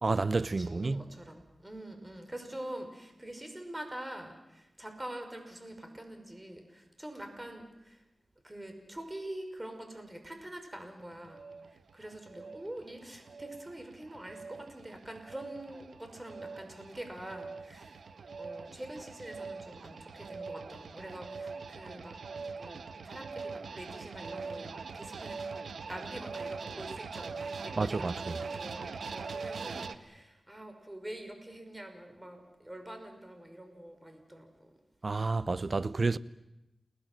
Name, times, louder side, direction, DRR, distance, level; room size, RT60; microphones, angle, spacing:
voice 1, 0.0-1.1 27.8-28.4 35.0-36.2, right 3 dB, 50° right, 0.9 m, -30 dB
voice 2, 0.6-8.0 8.4-11.5 11.9-18.0 18.4-22.2 22.6-25.4 25.9-34.7, right 1 dB, 20° right, 5.9 m, -45 dB
sound 1, 11.0-30.0, right 4 dB, 85° right, 1.2 m, -42 dB
29.5 x 19.5 x 7.7 m
cardioid pair, 50°, 0 cm